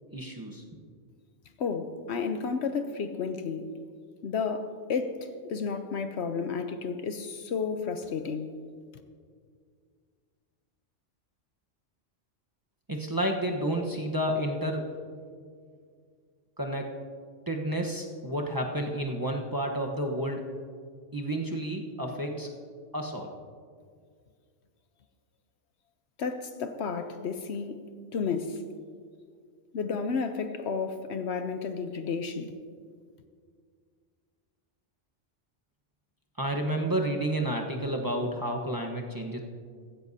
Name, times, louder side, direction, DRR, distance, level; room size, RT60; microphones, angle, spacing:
voice 1, 0.1-0.6 12.9-14.9 16.6-17.0 17.5-20.6 21.1-22.5 22.9-23.3 36.4-39.4, right 1 dB, 20° right, 0.9 m, -30 dB
voice 2, 1.6-3.7 4.2-8.5 26.2-27.8 28.1-28.6 29.7-32.5, left 5 dB, 65° left, 0.9 m, -32 dB
15.5 x 15.5 x 2.7 m
omnidirectional pair, 1.3 m